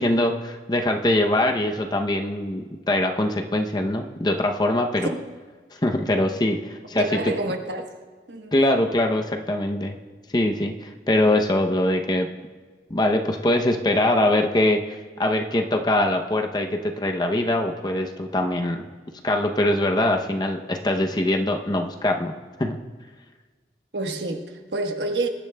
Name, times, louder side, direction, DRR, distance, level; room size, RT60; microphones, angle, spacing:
voice 1, 0.0-5.1 5.8-7.2 8.5-10.0 10.3-12.3 12.9-18.9 19.2-22.3 22.6-22.8, left 1 dB, 25° left, 4 dB, 0.6 m, -23 dB
voice 2, 6.9-7.8 8.3-8.6 23.9-25.3, right 2 dB, 80° right, 3 dB, 1.3 m, -28 dB
22.5 x 10.5 x 2.2 m, 1.4 s
head